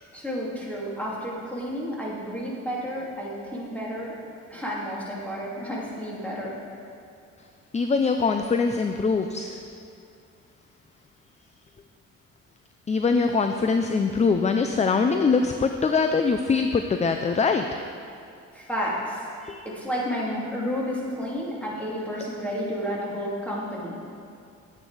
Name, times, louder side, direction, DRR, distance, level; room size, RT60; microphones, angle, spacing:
voice 1, 0.1-4.2 4.5-6.5 18.5-19.3 19.6-24.0, equal, 5° left, -5 dB, 2.9 m, -31 dB
voice 2, 7.7-9.6 12.9-17.7 19.4-19.6, left 4 dB, 25° left, 6 dB, 0.5 m, -23 dB
9.7 x 9.1 x 4.9 m, 2.5 s
cardioid pair, 90°, 30 cm